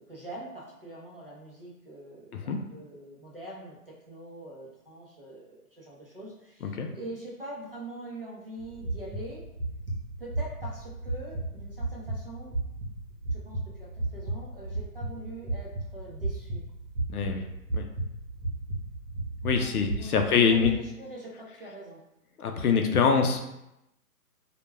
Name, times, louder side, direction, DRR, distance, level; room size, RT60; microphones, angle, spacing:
voice 1, 0.0-9.4 10.2-12.6 13.3-16.6 19.6-22.0, right 1 dB, 40° right, -5 dB, 0.5 m, -44 dB
sound 1, 8.6-20.7, right 2 dB, 75° right, 0.8 m, -34 dB
voice 2, 17.1-17.4 17.7-17.8 19.4-20.7 22.4-23.4, left 6 dB, 70° left, 4 dB, 0.5 m, -24 dB
2.2 x 2.1 x 3.2 m, 0.87 s
hypercardioid pair, 170°, 47 cm